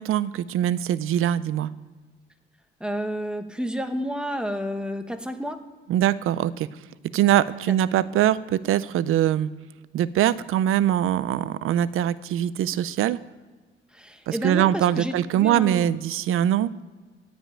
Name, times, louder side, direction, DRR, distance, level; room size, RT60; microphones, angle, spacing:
voice 1, 0.0-1.7 5.9-6.7 7.1-9.5 9.9-13.2 14.3-16.7, right 11 dB, 80° right, 17 dB, 0.6 m, -22 dB
voice 2, 2.8-5.6 13.9-15.9, equal, 5° right, 7 dB, 1.0 m, -30 dB
15.0 x 5.2 x 8.9 m, 1.3 s
cardioid pair, 125°, 21 cm